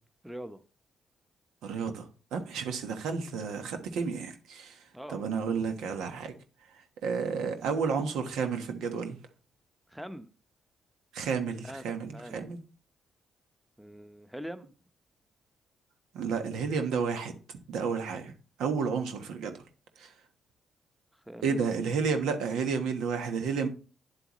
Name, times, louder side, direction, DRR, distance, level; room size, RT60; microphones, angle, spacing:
voice 1, 0.2-0.6 4.9-5.2 9.9-10.3 11.6-12.4 13.8-14.7 21.3-22.0, equal, 5° right, 0.9 m, -43 dB
voice 2, 1.6-4.8 5.1-6.3 7.0-9.2 11.1-12.6 16.1-17.3 17.7-18.3 18.6-19.5 20.0-20.1 21.4-23.7, right 5 dB, 85° right, 1.2 m, -31 dB
9.1 x 7.8 x 3.1 m
cardioid pair, 70°, 0 cm